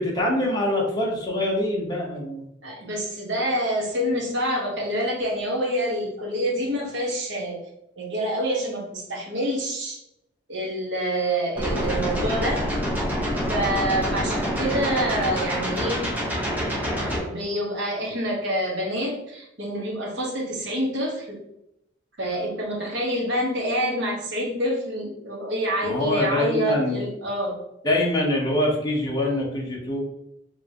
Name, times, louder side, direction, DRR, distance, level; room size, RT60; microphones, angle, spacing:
voice 1, 0.0-2.5 25.8-27.0 27.8-30.0, left 1 dB, 20° left, -3 dB, 1.1 m, -24 dB
voice 2, 2.6-7.6 8.0-10.0 10.5-12.7 13.5-16.1 17.2-21.4 22.2-27.6, equal, 70° right, -2 dB, 1.3 m, -27 dB
sound 1, 11.6-17.2, equal, 10° right, 1.0 m, -26 dB
4.8 x 3.2 x 2.9 m, 0.82 s
head